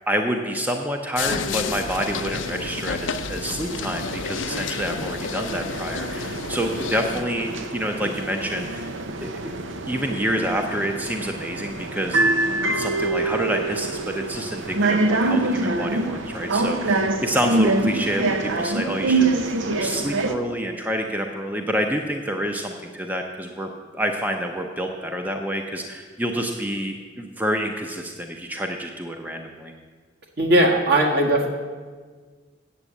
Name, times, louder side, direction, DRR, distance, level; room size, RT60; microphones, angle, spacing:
voice 1, 0.1-8.9 9.2-9.5 9.9-12.3 12.6-19.3 19.7-29.7, equal, 10° right, 3 dB, 0.6 m, -28 dB
sound 1, 1.2-7.3, left 6 dB, 80° left, 0.5 m, -31 dB
sound 2, 1.2-20.3, right 2 dB, 80° right, 0.7 m, -26 dB
voice 2, 30.4-31.5, right 1 dB, 60° right, 0 dB, 1.6 m, -18 dB
8.5 x 7.4 x 7.9 m, 1.5 s
head